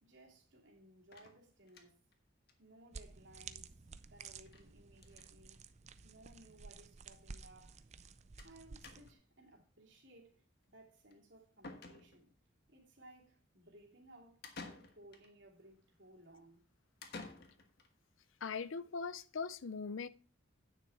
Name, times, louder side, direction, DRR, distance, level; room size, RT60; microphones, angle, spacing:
voice 1, 0.0-2.0 2.6-5.6 6.0-7.8 8.4-12.3 12.7-16.6, right 1 dB, 65° right, 2.6 m, -61 dB
sound 1, 1.1-2.1 2.5-2.6 2.9-3.0 3.2-3.3 4.5-4.7 4.9-5.3 6.2-6.3 6.5-6.6 8.4-8.6 8.8-9.3 11.1-11.2 11.6-12.4 14.4-15.3 17.0-17.9, left 3 dB, 50° left, 1.4 m, -52 dB
sound 2, 2.9-9.1, right 5 dB, 35° right, 0.5 m, -53 dB
voice 2, 18.4-20.1, left 5 dB, 75° left, 0.6 m, -40 dB
9.4 x 6.7 x 4.6 m
head